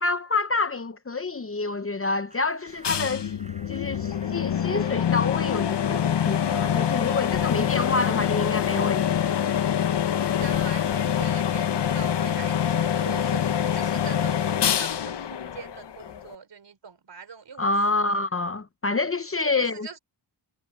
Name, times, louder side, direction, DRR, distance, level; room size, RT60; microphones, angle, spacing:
voice 1, 0.0-3.3 3.7-9.4 17.6-19.9, left 3 dB, 30° left, 0.7 m, -27 dB
Clapping, 1.5-8.7, right 1 dB, 15° right, 5.6 m, -52 dB
sound 1, 2.8-16.3, left 9 dB, 65° left, 0.9 m, -25 dB
voice 2, 10.3-18.2 19.4-20.0, right 6 dB, 65° right, 3.9 m, -42 dB
wide cardioid pair, 140°, 46 cm